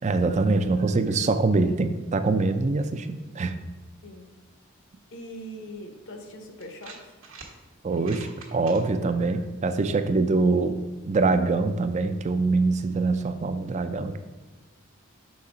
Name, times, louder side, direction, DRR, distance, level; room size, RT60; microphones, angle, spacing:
voice 1, 0.0-3.6 7.8-10.8 11.0-14.2, right 3 dB, 35° right, 10 dB, 0.4 m, -24 dB
voice 2, 5.1-7.2, equal, 65° left, 5 dB, 0.9 m, -41 dB
sound 1, 6.6-7.5 7.9-8.8, right 4 dB, 65° right, 1.1 m, -44 dB
5.8 x 4.1 x 4.9 m, 1.2 s
head